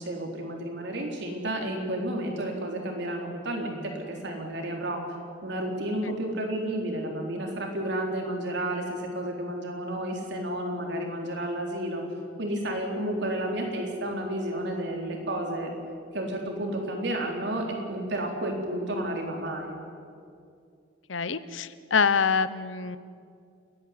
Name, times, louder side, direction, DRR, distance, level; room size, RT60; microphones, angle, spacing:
voice 1, 0.0-5.0 5.4-12.0 12.4-15.7 16.1-19.8, right 1 dB, 65° right, 1 dB, 4.0 m, -31 dB
voice 2, 21.1-23.0, left 5 dB, 80° left, 15 dB, 0.9 m, -25 dB
30.0 x 11.0 x 9.6 m, 2.4 s
head